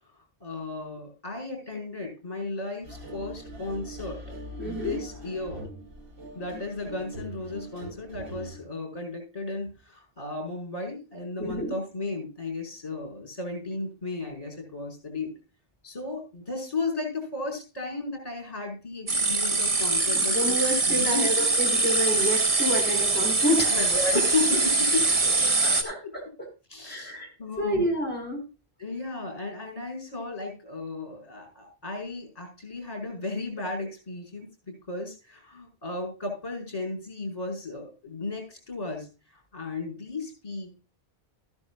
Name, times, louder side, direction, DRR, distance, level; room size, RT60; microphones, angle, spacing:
voice 1, 0.4-4.2 4.6-5.6 6.4-15.3 15.8-20.4 20.9-21.3 23.6-25.5 25.8-26.1 26.7-27.9 28.8-34.5 34.9-39.1 39.3-40.7, left 3 dB, 35° left, 3 dB, 5.7 m, -34 dB
sound 1, 2.8-8.6, right 1 dB, 75° right, 7.7 m, -42 dB
voice 2, 4.6-5.0 11.4-11.7 20.1-23.7 25.6-26.5 26.8-27.3 27.6-28.4, equal, 10° left, 1 dB, 4.7 m, -29 dB
sound 2, 19.1-25.8, right 3 dB, 35° right, 1.2 m, -23 dB
14.5 x 10.5 x 2.4 m, 0.31 s
omnidirectional pair, 1.1 m